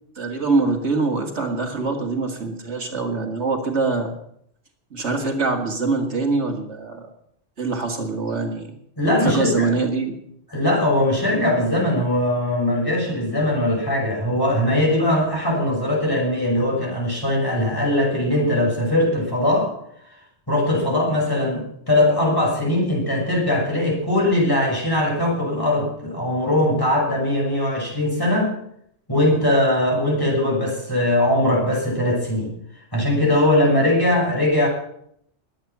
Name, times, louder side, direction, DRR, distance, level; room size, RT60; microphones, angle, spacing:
voice 1, 0.2-4.1 4.9-7.1 7.6-8.7 9.2-10.1, right 3 dB, 70° right, 3 dB, 2.1 m, -24 dB
voice 2, 9.0-9.7 10.5-19.7 20.5-28.5 29.1-32.5 32.9-34.7, left 1 dB, 20° left, -2 dB, 6.4 m, -20 dB
22.0 x 9.1 x 5.9 m, 0.71 s
omnidirectional pair, 1.2 m